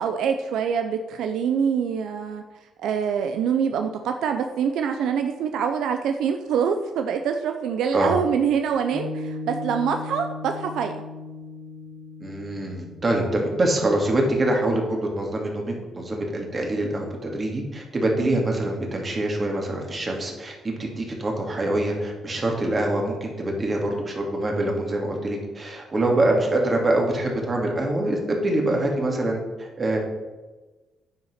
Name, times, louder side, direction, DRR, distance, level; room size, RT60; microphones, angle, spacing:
voice 1, 0.0-2.4 2.8-10.9 18.2-18.4 26.0-26.1, right 7 dB, 80° right, 6 dB, 0.6 m, -25 dB
Piano, 8.9-15.6, left 2 dB, 50° right, 3.0 m, -38 dB
voice 2, 12.2-30.0, right 1 dB, 30° right, 1 dB, 2.5 m, -25 dB
9.4 x 5.9 x 5.7 m, 1.2 s
cardioid pair, 90°, 0 cm